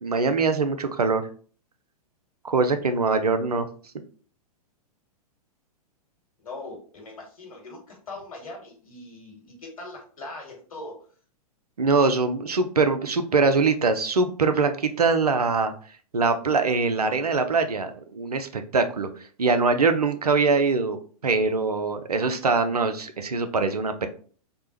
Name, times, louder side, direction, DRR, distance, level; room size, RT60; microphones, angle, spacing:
voice 1, 0.0-1.3 2.4-3.7 11.8-15.7 16.1-19.1 19.4-24.1, right 4 dB, 85° right, 9 dB, 0.4 m, -23 dB
voice 2, 6.4-10.9, left 2 dB, 70° left, 0 dB, 1.3 m, -41 dB
3.3 x 2.0 x 2.9 m, 0.43 s
figure-of-eight pair, 105°, 19 cm